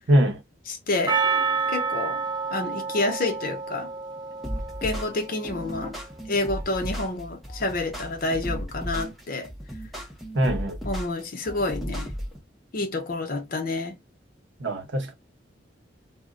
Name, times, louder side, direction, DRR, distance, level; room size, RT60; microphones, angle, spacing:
voice 1, 0.1-0.4 10.3-10.8 14.6-15.1, right 1 dB, 85° right, 0.9 m, -22 dB
voice 2, 0.7-1.2 1.7-2.2 2.5-3.9 4.8-6.0 6.3-9.5 10.8-12.1 12.7-14.0, left 2 dB, 50° left, 0.7 m, -28 dB
Percussion, 1.1-5.6, right 5 dB, 25° right, 0.4 m, -29 dB
sound 1, 4.4-12.4, equal, ahead, 0.8 m, -35 dB
2.2 x 2.1 x 3.6 m
head